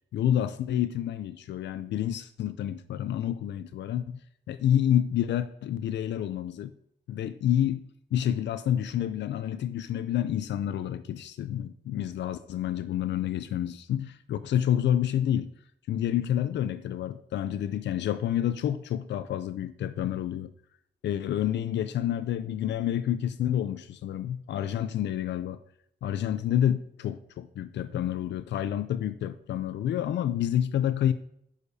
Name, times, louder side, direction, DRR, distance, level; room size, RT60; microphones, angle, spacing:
voice 1, 0.1-4.2 4.5-6.7 7.1-15.5 15.9-20.5 21.0-25.6 26.0-31.1, left 10 dB, 85° left, 0.4 m, -29 dB
9.8 x 6.5 x 2.7 m
wide cardioid pair, 145°, 18 cm